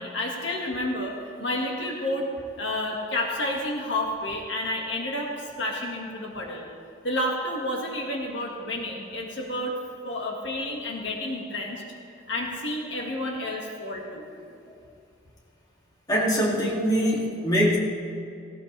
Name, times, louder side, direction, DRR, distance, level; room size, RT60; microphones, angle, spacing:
voice 1, 0.0-2.3 2.6-6.7 7.0-9.8 10.0-11.8 12.3-14.2, left 1 dB, 65° left, -1 dB, 1.9 m, -30 dB
voice 2, 16.1-17.8, equal, 20° left, -4 dB, 2.5 m, -23 dB
18.0 x 18.0 x 3.4 m, 2.6 s
head